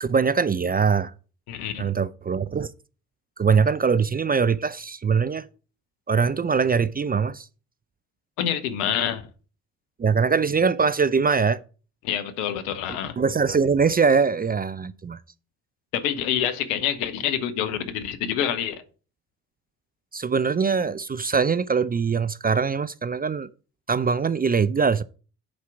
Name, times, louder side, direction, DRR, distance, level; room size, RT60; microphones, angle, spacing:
voice 1, 0.0-1.1 1.8-2.7 3.4-5.5 6.1-7.5 10.0-11.6 13.2-15.2 20.1-23.5 23.9-25.0, right 5 dB, 20° right, 0.4 m, -22 dB
voice 2, 1.5-1.9 8.4-9.2 12.0-13.2 15.9-18.8, left 9 dB, 80° left, 0.9 m, -27 dB
7.4 x 4.4 x 5.9 m
hypercardioid pair, 40°, 45 cm